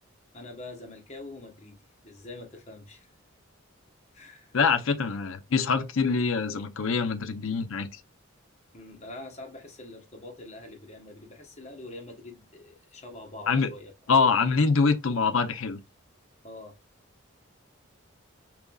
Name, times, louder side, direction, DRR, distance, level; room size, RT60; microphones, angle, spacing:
voice 1, 0.3-1.8 2.0-3.1 4.1-4.6 8.7-13.9 16.4-16.8, left 2 dB, 30° left, 1.0 m, -44 dB
voice 2, 4.5-7.9 13.5-13.7 14.1-15.8, left 5 dB, 75° left, 0.6 m, -24 dB
5.0 x 3.0 x 2.3 m
head